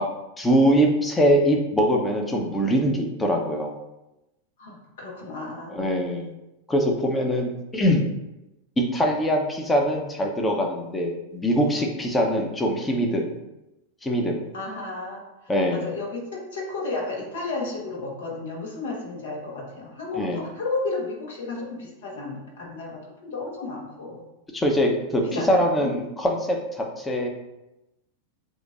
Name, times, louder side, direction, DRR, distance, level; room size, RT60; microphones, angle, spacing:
voice 1, 0.4-3.7 5.7-6.3 6.7-8.1 8.8-13.3 14.0-14.4 15.5-15.9 20.2-20.4 24.5-27.3, equal, 10° left, 1 dB, 0.8 m, -23 dB
voice 2, 4.6-5.8 14.5-15.2 15.7-24.2 25.2-26.0, left 3 dB, 60° left, -2 dB, 1.3 m, -33 dB
7.8 x 2.6 x 2.5 m, 0.95 s
figure-of-eight pair, 90°, 0 cm